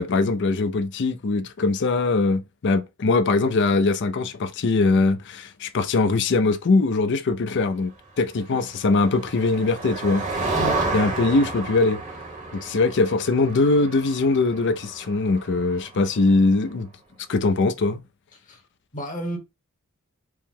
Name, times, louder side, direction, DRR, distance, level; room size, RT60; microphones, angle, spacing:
voice 1, 0.0-7.9 8.2-10.6 10.9-12.0 12.5-16.9 17.3-18.0, left 3 dB, 55° left, 0.5 m, -21 dB
Motor vehicle (road), 8.5-16.3, right 3 dB, 35° right, 1.0 m, -31 dB
voice 2, 18.9-19.4, equal, 40° left, 1.1 m, -31 dB
4.6 x 2.1 x 3.6 m
head